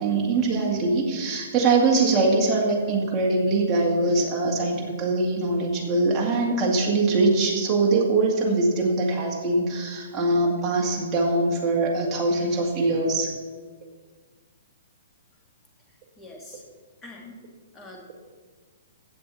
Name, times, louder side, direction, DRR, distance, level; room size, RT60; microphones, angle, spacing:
voice 1, 0.0-13.4, right 3 dB, 15° right, -3 dB, 1.9 m, -22 dB
voice 2, 16.2-16.6 17.0-17.4 17.7-18.1, left 2 dB, 10° left, 0 dB, 1.5 m, -43 dB
16.0 x 8.3 x 4.1 m, 1.5 s
hypercardioid pair, 170°, 0 cm